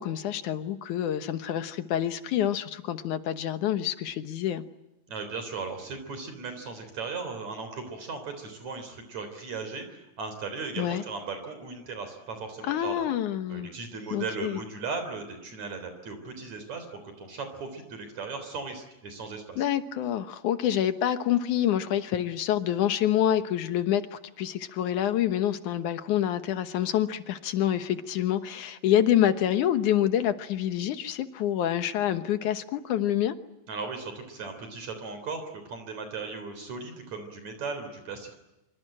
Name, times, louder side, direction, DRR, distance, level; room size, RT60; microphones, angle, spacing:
voice 1, 0.0-4.6 10.8-11.0 12.6-13.7 14.1-14.6 19.6-33.4, left 11 dB, 65° left, 10 dB, 2.4 m, -27 dB
voice 2, 5.1-13.0 13.5-19.6 33.7-38.4, right 4 dB, 50° right, 8 dB, 4.7 m, -37 dB
26.0 x 25.0 x 8.9 m, 0.94 s
omnidirectional pair, 4.1 m